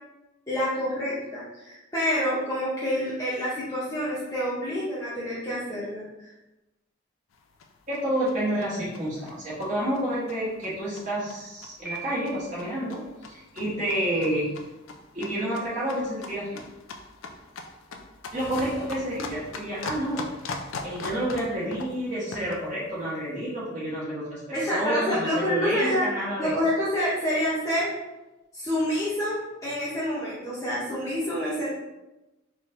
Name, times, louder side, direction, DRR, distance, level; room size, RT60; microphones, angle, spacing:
voice 1, 0.5-6.3 24.5-26.1 26.4-27.9 28.5-31.7, equal, 15° left, -9 dB, 0.7 m, -27 dB
sound 1, 7.3-22.7, left 3 dB, 85° left, 0.4 m, -41 dB
voice 2, 7.9-14.5 15.1-16.6 18.3-20.3 20.8-26.6, right 1 dB, 40° right, -8 dB, 1.2 m, -29 dB
Piano, 11.8-12.8, right 4 dB, 10° right, 1.0 m, -40 dB
sound 2, 18.3-20.6, equal, 70° left, 1.1 m, -46 dB
4.3 x 3.2 x 2.5 m, 1.0 s
head